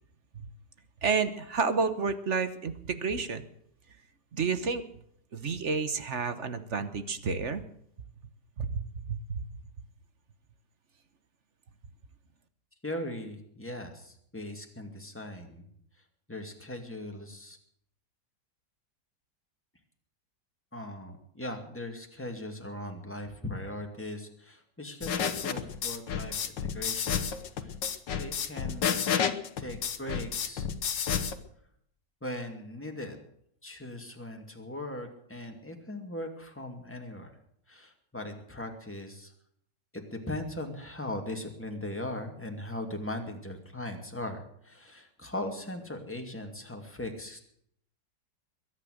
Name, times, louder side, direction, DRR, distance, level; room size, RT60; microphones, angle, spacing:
voice 1, 1.0-3.4 4.3-4.8 5.3-7.6 8.6-9.4, right 5 dB, 45° right, 11 dB, 1.3 m, -30 dB
voice 2, 12.8-15.7 16.3-17.6 20.7-27.2 27.6-27.8 28.2-29.2 29.6-30.7 32.2-33.2 33.6-37.3 37.7-39.3 39.9-47.4, left 1 dB, 5° left, 3 dB, 2.4 m, -39 dB
sound 1, 25.0-31.3, left 7 dB, 80° left, 1.8 m, -31 dB
22.0 x 9.8 x 6.5 m, 0.68 s
omnidirectional pair, 1.9 m